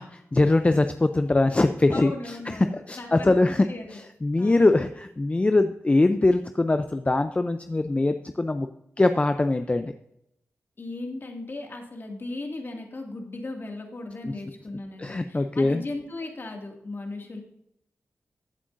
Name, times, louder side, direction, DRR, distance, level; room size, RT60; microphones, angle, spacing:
voice 1, 0.0-2.1 2.9-3.7 4.2-8.7 9.0-9.9 15.0-15.8, left 2 dB, 25° left, 8 dB, 0.5 m, -22 dB
voice 2, 1.9-4.0 4.4-4.8 10.8-17.4, left 2 dB, 45° left, 2 dB, 2.2 m, -37 dB
15.0 x 8.5 x 2.6 m, 0.80 s
cardioid pair, 65°, 5 cm